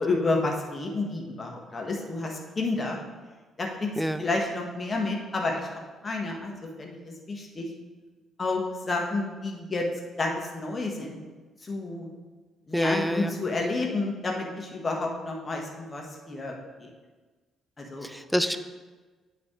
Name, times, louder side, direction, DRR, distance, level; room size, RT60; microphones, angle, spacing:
voice 1, 0.0-3.0 3.6-3.9 4.2-5.7 6.0-7.7 8.4-9.9 10.2-11.2 11.6-12.1 12.7-16.9 17.8-18.1, left 3 dB, 30° left, 0 dB, 1.4 m, -30 dB
voice 2, 12.7-13.3 18.0-18.6, equal, ahead, 11 dB, 0.4 m, -26 dB
9.7 x 3.3 x 4.9 m, 1.3 s
figure-of-eight pair, 45°, 0 cm